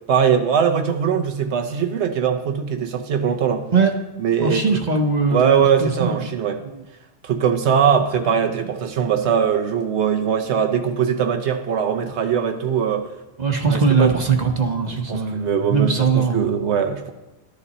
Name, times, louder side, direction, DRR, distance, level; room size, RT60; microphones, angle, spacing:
voice 1, 0.1-3.6 4.2-4.7 5.3-6.6 7.2-13.1 13.7-14.2 14.9-17.1, right 7 dB, 85° right, 5 dB, 1.0 m, -21 dB
voice 2, 4.4-6.3 6.7-6.8 13.4-16.5, right 5 dB, 45° right, 4 dB, 0.9 m, -20 dB
12.0 x 8.3 x 4.1 m, 1.1 s
omnidirectional pair, 1.1 m